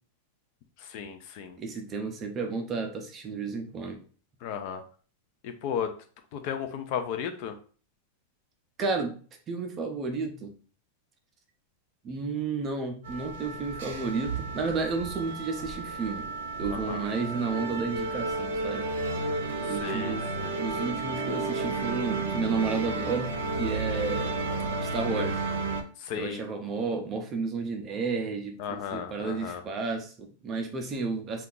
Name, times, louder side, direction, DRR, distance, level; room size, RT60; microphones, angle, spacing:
voice 1, 0.8-1.6 4.4-4.8 5.4-5.9 6.3-7.6 16.7-17.0 19.7-20.6 26.0-26.4 28.6-29.6, left 7 dB, 40° left, 7 dB, 0.4 m, -34 dB
voice 2, 1.6-4.0 8.8-9.2 9.5-10.5 12.0-16.3 16.6-18.9 19.6-20.2 20.6-23.3 23.6-24.3 24.8-25.4 26.1-31.5, right 4 dB, 20° right, 4 dB, 0.4 m, -32 dB
sound 1, 13.0-25.8, right 3 dB, 85° right, 0.6 m, -32 dB
2.7 x 2.3 x 3.7 m, 0.41 s
supercardioid pair, 170°, 0 cm